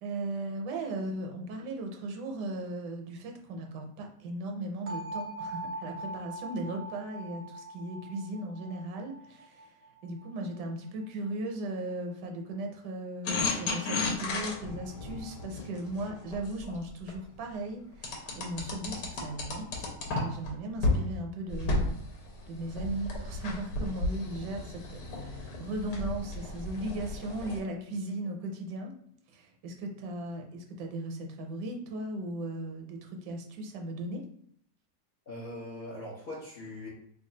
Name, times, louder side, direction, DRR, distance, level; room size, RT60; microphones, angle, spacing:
voice 1, 0.0-19.9 20.1-22.0 22.5-28.9 29.3-34.2, right 1 dB, 75° right, 3 dB, 1.2 m, -37 dB
sound 1, 4.9-10.7, right 1 dB, 60° right, 0.4 m, -42 dB
sound 2, 13.3-17.2 18.0-20.5 20.8-21.0 21.5-27.6, left 2 dB, 80° left, 1.4 m, -33 dB
voice 2, 35.3-36.9, left 1 dB, 55° left, -6 dB, 0.6 m, -41 dB
3.2 x 2.3 x 3.8 m, 0.68 s
omnidirectional pair, 1.9 m